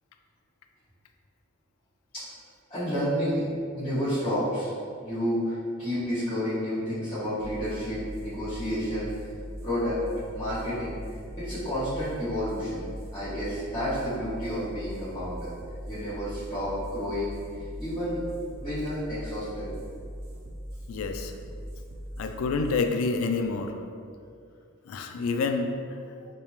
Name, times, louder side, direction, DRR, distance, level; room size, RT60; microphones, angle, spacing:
voice 1, 2.7-3.5 3.8-4.7 5.0-9.3 9.6-10.0 10.3-11.0 11.4-12.8 13.1-15.5 15.9-18.2 18.6-19.7, equal, 25° left, -15 dB, 1.3 m, -30 dB
sound 1, 7.4-24.4, equal, 70° right, 0.5 m, -41 dB
voice 2, 20.9-21.3 22.2-23.7 24.9-25.7, left 4 dB, 90° left, 6 dB, 0.3 m, -28 dB
3.3 x 2.8 x 3.0 m, 2.3 s
head